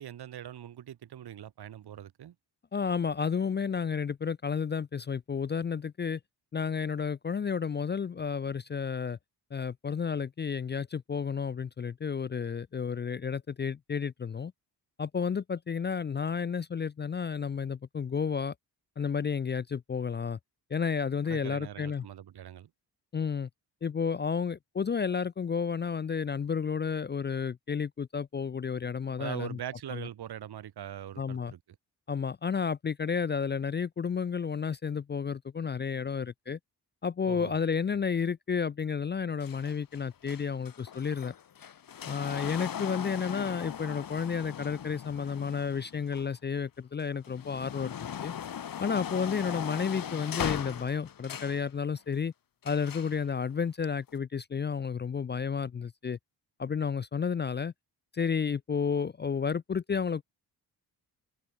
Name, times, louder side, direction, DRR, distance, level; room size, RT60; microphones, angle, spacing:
voice 1, 0.0-2.4 21.3-22.7 29.2-31.6 37.3-37.5, right 10 dB, 70° right, 1.7 m, -42 dB
voice 2, 2.7-6.2 6.5-9.2 9.5-14.5 15.0-18.5 19.0-20.4 20.7-22.0 23.1-23.5 23.8-29.6 29.9-30.0 31.2-31.5 32.1-36.6 37.0-41.3 42.1-48.3 48.8-52.3 52.6-56.2 56.6-57.7 58.1-60.2, left 6 dB, 30° left, 0.4 m, -31 dB
sound 1, 39.4-46.6 47.1-51.7 52.6-53.2 54.1-54.2, left 9 dB, 55° left, 2.1 m, -39 dB
wide cardioid pair, 170°, 40 cm